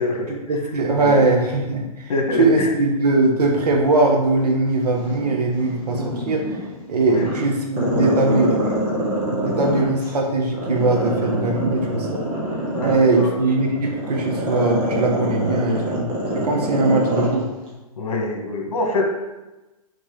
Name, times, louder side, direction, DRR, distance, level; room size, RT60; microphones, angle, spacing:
voice 1, 0.3-2.1 2.4-6.6 6.9-8.6 9.4-12.3 12.8-16.1 16.3-17.5, right 2 dB, 80° right, 1 dB, 1.7 m, -20 dB
voice 2, 2.1-2.7 7.1-7.3 12.8-13.4 16.9-17.0 18.0-19.0, left 2 dB, 65° left, 1 dB, 2.0 m, -24 dB
Growling, 4.9-6.7 7.1-10.1 10.5-17.3 17.7-17.8, right 1 dB, 20° right, 1.6 m, -24 dB
6.5 x 3.9 x 5.1 m, 1.1 s
hypercardioid pair, 165°, 20 cm